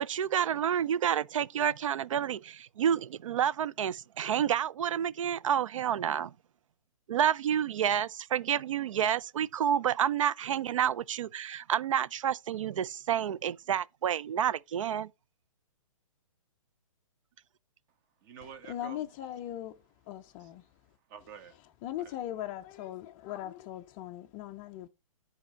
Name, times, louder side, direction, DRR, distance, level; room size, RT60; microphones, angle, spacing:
voice 1, 0.0-6.3 7.1-15.1, right 9 dB, 65° right, 0.5 m, -29 dB
voice 2, 17.9-19.1 20.4-21.6 21.9-22.2, right 7 dB, 35° right, 1.5 m, -50 dB
voice 3, 18.7-20.7 21.8-24.9, left 12 dB, 20° left, 0.4 m, -39 dB
10.5 x 4.0 x 4.5 m
hypercardioid pair, 150°, 18 cm